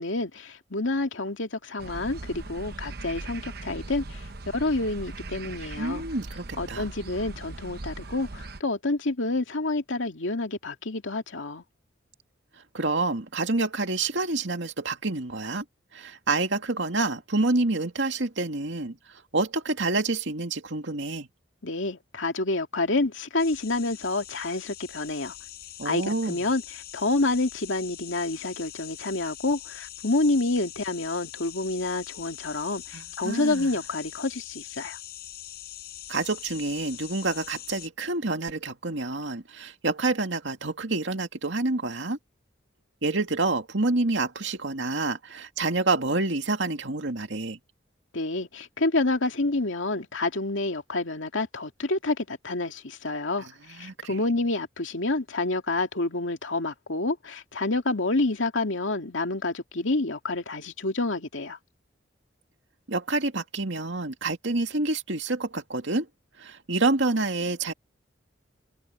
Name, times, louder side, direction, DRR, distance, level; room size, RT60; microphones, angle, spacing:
voice 1, 0.0-4.2 4.5-6.0 6.6-11.6 21.6-25.3 25.8-26.6 26.9-35.0 48.1-61.6, left 2 dB, 85° left, 2.3 m, -28 dB
sound 1, 1.8-8.6, right 2 dB, 50° right, 0.9 m, -39 dB
voice 2, 5.8-6.9 12.7-15.6 15.9-19.0 19.3-21.3 25.8-26.5 32.9-33.8 36.1-42.2 43.0-47.6 53.7-54.2 62.9-66.1 66.4-67.7, right 3 dB, 70° right, 2.3 m, -28 dB
sound 2, 23.4-37.9, left 13 dB, 55° left, 5.0 m, -43 dB
head